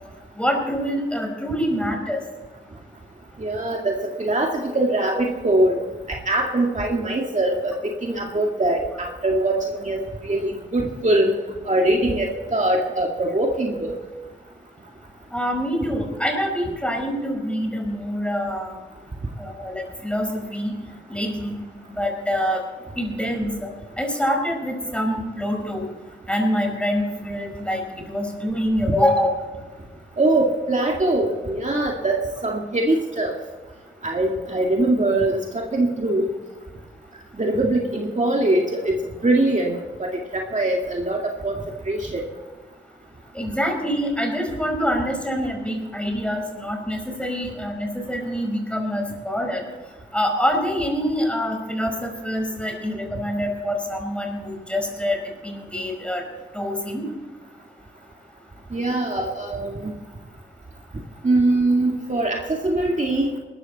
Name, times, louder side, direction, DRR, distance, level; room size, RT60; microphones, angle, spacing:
voice 1, 0.3-2.2 15.3-18.8 19.4-20.8 21.1-21.5 21.9-22.6 23.0-25.9 26.3-29.4 43.3-49.6 50.1-56.2 56.5-57.1 59.2-59.3, equal, 5° left, 2 dB, 5.0 m, -25 dB
voice 2, 3.4-5.8 6.1-11.3 11.7-14.0 30.2-33.3 34.0-36.3 37.3-39.0 39.2-42.2 58.7-59.9 61.2-63.3, right 2 dB, 40° right, 0 dB, 2.1 m, -22 dB
20.0 x 13.0 x 4.2 m, 1.3 s
cardioid pair, 65°, 20 cm